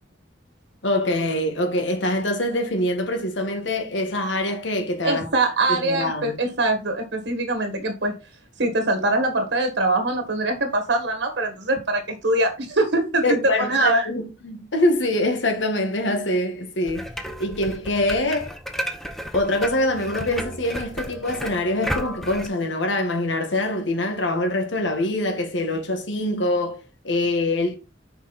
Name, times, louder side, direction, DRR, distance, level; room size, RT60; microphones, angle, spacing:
voice 1, 0.8-5.3 5.7-6.4 13.2-17.1 17.4-18.6 19.3-27.8, left 1 dB, 90° left, 1.8 m, -24 dB
voice 2, 5.0-8.1 8.6-14.1, right 2 dB, 75° right, 1.6 m, -23 dB
sound 1, 16.9-22.5, equal, ahead, 0.8 m, -33 dB
6.3 x 4.9 x 4.1 m
head